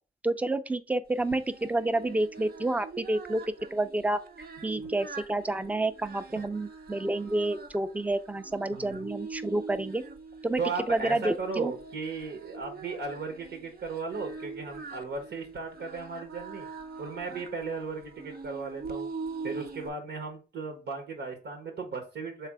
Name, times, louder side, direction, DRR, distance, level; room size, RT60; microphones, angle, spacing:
voice 1, 0.2-3.4 3.7-4.2 4.6-10.0 10.4-10.6 10.9-11.7, right 2 dB, 10° right, 0.4 m, -29 dB
Singing, 1.1-19.9, right 4 dB, 65° right, 0.8 m, -43 dB
voice 2, 8.7-9.1 10.6-16.7 17.0-19.1 19.4-22.5, right 4 dB, 85° right, 1.1 m, -36 dB
3.4 x 3.2 x 4.6 m
cardioid pair, 60°, 17 cm